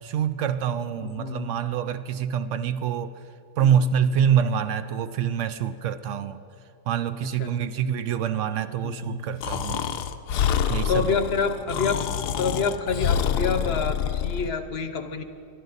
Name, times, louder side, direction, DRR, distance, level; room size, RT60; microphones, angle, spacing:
voice 1, 0.0-3.1 3.6-6.4 6.9-9.9 10.7-11.1, right 8 dB, 70° right, 12 dB, 0.7 m, -25 dB
voice 2, 1.0-1.6 3.6-4.1 7.2-7.7 8.8-9.2 10.9-12.1 12.3-15.2, left 5 dB, 50° left, 9 dB, 0.9 m, -28 dB
Breathing, 9.4-14.5, left 9 dB, 80° left, 1.2 m, -27 dB
24.5 x 12.0 x 4.0 m, 2.4 s
omnidirectional pair, 1.7 m